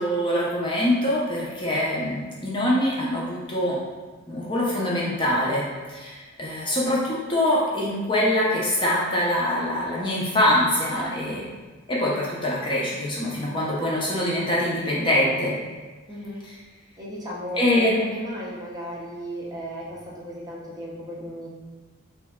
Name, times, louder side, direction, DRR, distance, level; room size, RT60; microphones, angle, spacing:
voice 1, 0.0-3.8 4.3-11.4 11.9-15.5 17.6-18.0, left 1 dB, 25° left, -5 dB, 0.6 m, -24 dB
voice 2, 10.9-11.4 16.1-16.5 17.0-21.5, equal, 20° right, -6 dB, 0.7 m, -35 dB
3.4 x 3.1 x 3.5 m, 1.3 s
head